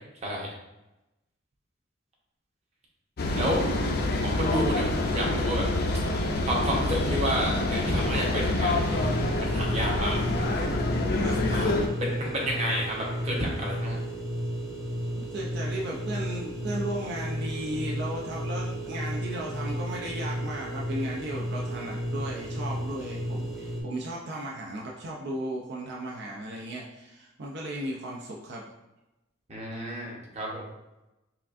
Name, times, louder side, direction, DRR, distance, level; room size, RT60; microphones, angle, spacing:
sound 1, 3.2-11.9, left 2 dB, 55° left, 0.5 m, -27 dB
voice 1, 3.4-4.1 11.2-11.5 15.2-28.6 29.9-30.0, right 1 dB, 60° right, -2 dB, 0.5 m, -36 dB
voice 2, 4.2-5.7 6.5-10.6 11.5-11.7 12.0-14.0 29.5-30.6, equal, 35° right, -3 dB, 0.9 m, -31 dB
sound 2, 8.6-23.8, equal, ahead, 0.7 m, -33 dB
5.8 x 2.4 x 2.5 m, 0.97 s
head